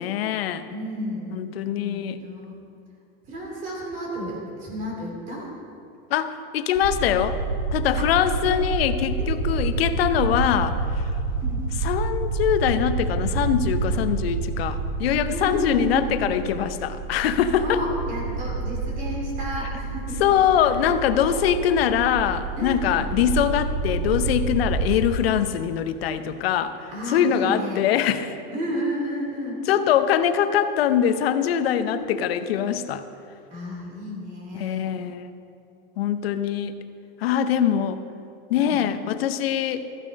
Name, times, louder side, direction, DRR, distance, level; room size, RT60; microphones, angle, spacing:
voice 1, 0.0-0.7 1.3-2.2 6.1-7.4 7.7-11.1 11.8-17.8 20.2-28.4 29.7-33.0 34.6-35.3 36.0-36.8 37.2-38.0 38.5-39.9, left 9 dB, 85° left, 10 dB, 0.8 m, -23 dB
voice 2, 0.7-1.5 1.8-2.6 3.3-5.5 8.0-8.1 8.4-8.5 9.2-9.5 11.4-11.7 15.3-16.2 17.6-20.2 20.6-21.0 21.3-21.8 22.5-23.0 26.9-27.8 28.5-29.6 31.8-32.1 33.5-34.9 38.5-38.8, equal, 25° right, -2 dB, 2.7 m, -32 dB
sound 1, 6.8-24.9, right 3 dB, 45° right, 2.0 m, -28 dB
14.0 x 7.4 x 5.2 m, 2.6 s
supercardioid pair, 175°, 30 cm